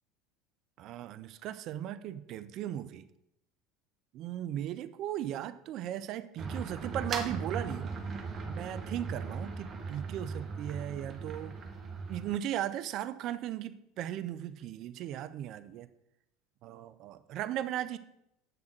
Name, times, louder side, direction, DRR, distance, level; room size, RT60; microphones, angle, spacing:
voice 1, 0.8-3.0 4.1-7.9 8.4-11.6 12.1-15.9 16.6-18.0, right 11 dB, 55° right, 13 dB, 0.5 m, -37 dB
sound 1, 6.4-12.4, right 4 dB, 35° right, 1.1 m, -38 dB
7.9 x 3.5 x 6.4 m, 0.81 s
hypercardioid pair, 80°, 0 cm